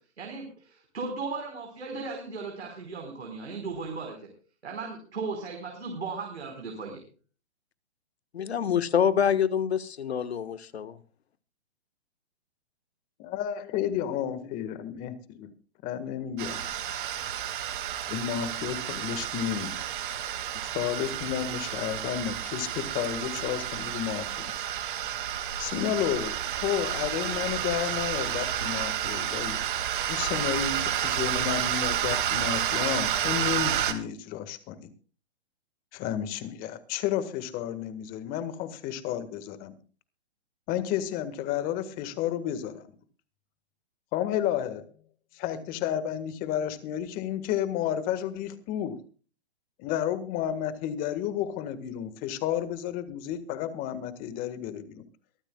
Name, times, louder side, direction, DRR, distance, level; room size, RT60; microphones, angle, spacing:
voice 1, 0.2-4.3 4.6-7.0, right 4 dB, 85° right, 4.7 m, -36 dB
voice 2, 8.3-11.0, left 8 dB, 75° left, 1.5 m, -26 dB
voice 3, 13.2-15.5 15.8-16.7 18.1-19.9 20.7-24.5 25.6-29.6 30.1-34.9 35.9-39.7 40.7-42.9 44.1-44.9 45.3-49.0 49.8-55.0, left 10 dB, 25° left, 1.7 m, -31 dB
sound 1, 16.4-33.9, right 10 dB, 50° right, 2.3 m, -30 dB
23.5 x 12.0 x 2.4 m
hypercardioid pair, 140°, 33 cm